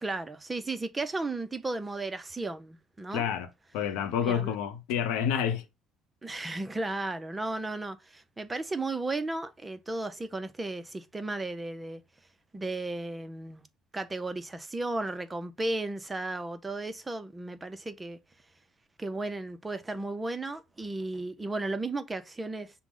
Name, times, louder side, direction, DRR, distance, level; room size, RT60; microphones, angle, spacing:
voice 1, 0.0-3.3 4.2-4.5 6.2-12.0 12.5-13.6 13.9-18.2 19.0-22.7, right 2 dB, 15° right, 0.4 m, -34 dB
voice 2, 3.1-5.6, left 8 dB, 85° left, 0.7 m, -29 dB
6.0 x 2.0 x 3.7 m
cardioid pair, 135°, 0 cm